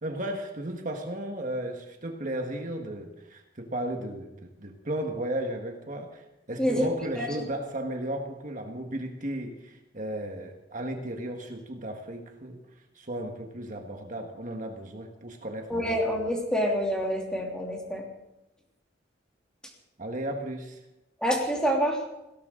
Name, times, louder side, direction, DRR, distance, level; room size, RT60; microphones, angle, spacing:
voice 1, 0.0-15.9 20.0-20.8, right 1 dB, 45° right, 3 dB, 1.6 m, -35 dB
voice 2, 15.7-18.0 21.2-22.0, equal, 5° left, -1 dB, 2.9 m, -27 dB
19.0 x 17.0 x 3.9 m, 0.93 s
head